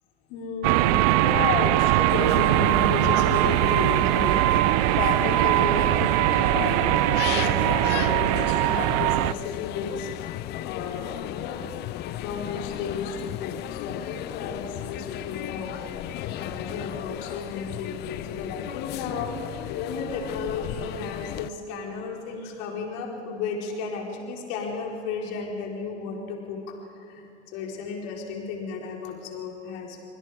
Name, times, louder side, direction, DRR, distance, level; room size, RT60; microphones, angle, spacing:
voice 1, 0.3-10.1 10.6-11.6 12.1-15.8 16.2-26.8 27.1-30.0, left 5 dB, 45° left, 0 dB, 4.4 m, -33 dB
sound 1, 0.6-9.3, right 19 dB, 35° right, 0.4 m, -21 dB
sound 2, 2.1-21.5, left 14 dB, 30° left, 0.6 m, -35 dB
24.5 x 23.5 x 5.1 m, 3.0 s
figure-of-eight pair, 95°, 36 cm